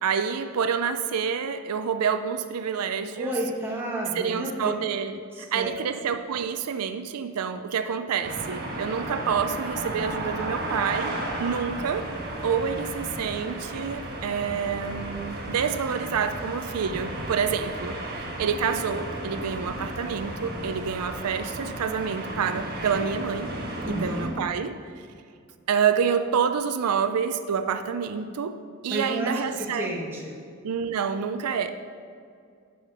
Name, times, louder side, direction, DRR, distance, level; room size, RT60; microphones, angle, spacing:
voice 1, 0.0-3.3 4.1-12.1 12.4-23.5 23.8-25.1 25.7-28.6 28.8-30.0 30.6-31.7, right 6 dB, 90° right, 9 dB, 0.5 m, -28 dB
voice 2, 3.2-4.7 5.3-5.9 23.8-24.3 28.9-30.3, right 1 dB, 10° right, -3 dB, 1.3 m, -31 dB
sound 1, 8.2-24.3, right 1 dB, 45° right, 1.4 m, -34 dB
11.0 x 5.0 x 5.1 m, 2.3 s
head